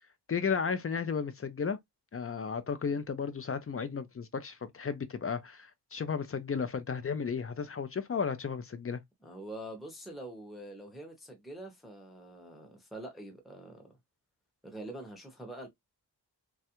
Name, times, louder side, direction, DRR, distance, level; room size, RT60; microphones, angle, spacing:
voice 1, 0.3-1.8 2.1-9.0, left 6 dB, 35° left, 0.4 m, -34 dB
voice 2, 9.2-13.9 14.6-15.7, right 1 dB, ahead, 0.7 m, -45 dB
3.2 x 2.3 x 2.8 m
wide cardioid pair, 160°, 42 cm